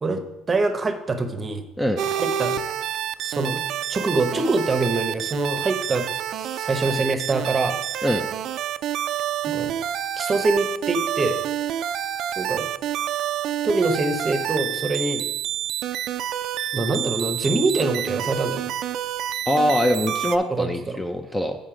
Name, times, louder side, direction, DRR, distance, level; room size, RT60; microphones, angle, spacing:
voice 1, 0.0-1.6 2.2-2.6 3.2-3.6 3.9-6.1 6.4-7.8 9.5-9.7 10.2-11.4 12.4-12.7 13.6-15.2 16.7-18.7 20.5-21.0, right 2 dB, 25° right, 8 dB, 0.8 m, -24 dB
sound 1, 2.0-20.4, right 10 dB, 60° right, 0.4 m, -28 dB
voice 2, 19.5-21.6, equal, 10° left, 5 dB, 0.5 m, -23 dB
7.5 x 5.3 x 4.9 m, 0.97 s
cardioid pair, 115°, 0 cm